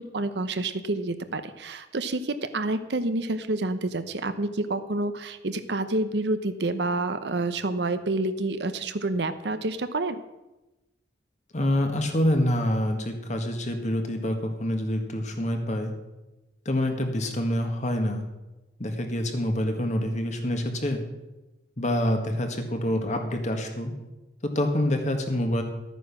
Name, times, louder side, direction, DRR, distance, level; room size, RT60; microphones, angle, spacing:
voice 1, 0.0-10.2, right 2 dB, 65° right, 11 dB, 0.8 m, -28 dB
voice 2, 11.5-15.9 16.6-18.2 18.8-21.0 21.8-23.9 24.5-25.6, left 1 dB, 40° left, 5 dB, 1.7 m, -26 dB
12.5 x 9.3 x 6.0 m, 1.0 s
head